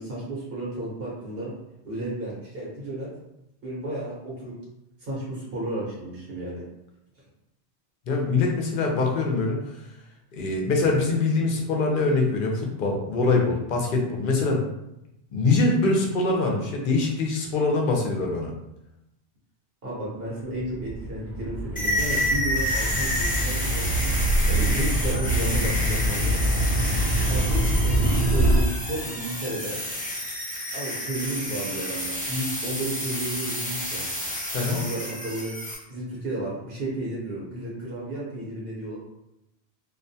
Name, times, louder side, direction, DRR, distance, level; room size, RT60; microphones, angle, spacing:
voice 1, 0.0-1.5 1.8-3.1 3.6-4.5 5.0-6.6 19.8-24.1 24.5-26.3 27.3-29.8 30.7-34.1 34.7-35.5 35.9-39.0, right 1 dB, 65° right, -5 dB, 1.0 m, -33 dB
voice 2, 8.1-9.8 10.3-14.6 15.3-18.5 24.5-24.6 34.5-34.8, left 3 dB, 60° left, 0 dB, 0.6 m, -23 dB
sound 1, 20.6-28.6, right 1 dB, 85° right, 0.9 m, -24 dB
sound 2, 21.8-35.8, left 1 dB, 10° left, 0.4 m, -30 dB
2.3 x 2.2 x 2.6 m, 0.87 s
omnidirectional pair, 1.1 m